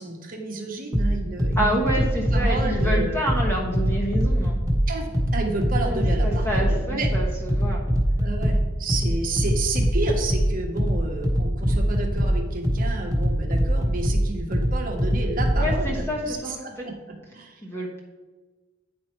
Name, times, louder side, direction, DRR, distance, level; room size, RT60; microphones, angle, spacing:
voice 1, 0.0-1.8 2.3-3.2 4.9-7.1 8.2-17.6, right 2 dB, 45° right, 2 dB, 1.2 m, -31 dB
sound 1, 0.9-15.9, equal, 20° right, 1.4 m, -23 dB
voice 2, 1.6-4.6 5.9-7.8 15.6-16.6 17.6-18.0, equal, 15° left, -3 dB, 1.2 m, -28 dB
9.4 x 4.4 x 4.5 m, 1.3 s
head